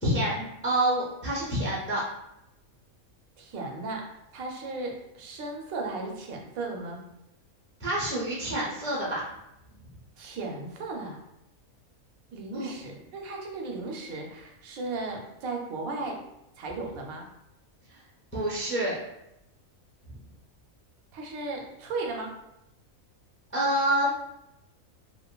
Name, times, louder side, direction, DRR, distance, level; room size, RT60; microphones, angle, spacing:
voice 1, 0.0-2.0 7.8-9.3 12.5-12.7 18.3-19.0 23.5-24.1, right 1 dB, 20° left, -6 dB, 0.3 m, -27 dB
voice 2, 3.4-4.1 4.3-7.0 10.2-11.2 12.3-16.2 16.6-17.3 21.1-22.3, right 3 dB, 85° right, 1 dB, 1.0 m, -35 dB
2.7 x 2.5 x 2.2 m, 0.84 s
omnidirectional pair, 1.4 m